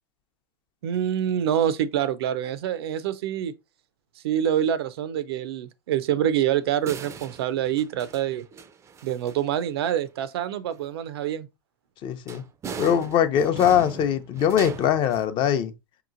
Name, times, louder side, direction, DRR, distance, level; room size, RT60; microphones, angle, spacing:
voice 1, 0.8-3.5 4.2-8.4 9.0-11.5, right 10 dB, 80° right, 0.5 m, -26 dB
sound 1, 6.5-6.6 6.8-9.7 12.3-15.2, right 6 dB, 20° right, 0.4 m, -39 dB
voice 2, 12.0-12.4 12.8-15.7, left 9 dB, 40° left, 0.6 m, -22 dB
5.4 x 2.9 x 2.5 m
hypercardioid pair, 120°, 13 cm